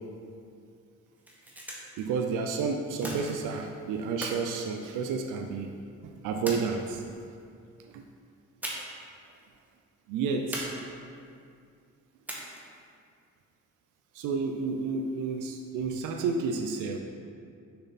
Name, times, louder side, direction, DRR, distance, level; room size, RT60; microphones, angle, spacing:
sound 1, 1.1-2.0 3.0-3.7 4.2-5.5 6.5-7.2 8.6-9.1 9.3-9.5 10.5-11.3 12.3-12.8, right 1 dB, 5° right, 1.4 m, -39 dB
voice 1, 2.0-5.7 6.0-7.0 7.9-8.1 10.1-10.7 14.1-17.0, right 5 dB, 85° right, 4 dB, 0.6 m, -31 dB
6.6 x 5.9 x 4.2 m, 2.3 s
cardioid pair, 90°, 30 cm